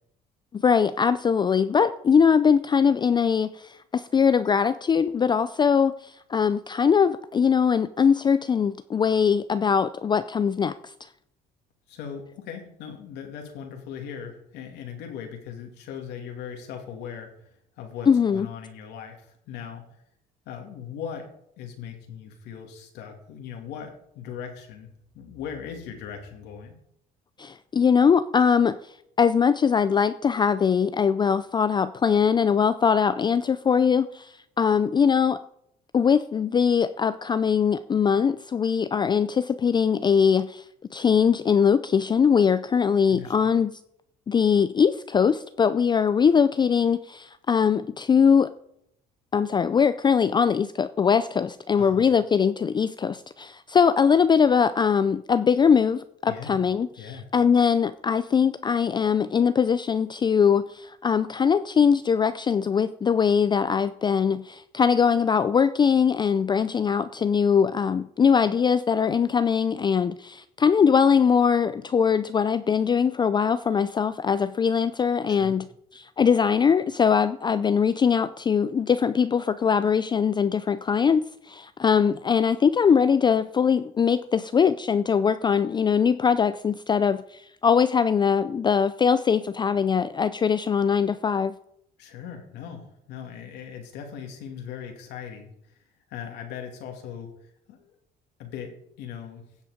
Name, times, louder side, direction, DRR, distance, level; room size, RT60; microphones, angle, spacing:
voice 1, 0.5-10.7 18.1-18.5 27.4-28.8 29.2-35.4 35.9-40.6 40.9-43.7 44.3-48.5 49.3-75.7 75.9-91.5, left 6 dB, 25° left, 0.4 m, -21 dB
voice 2, 11.9-17.3 17.8-19.9 20.5-21.3 21.6-24.9 25.1-26.7 43.1-43.5 51.8-52.0 56.3-56.6 57.0-57.3 75.3-75.6 92.0-95.5 96.1-97.3 97.7-97.9 98.4-99.4, left 7 dB, 85° left, 2.7 m, -39 dB
16.0 x 7.4 x 5.1 m
cardioid pair, 110°, 17 cm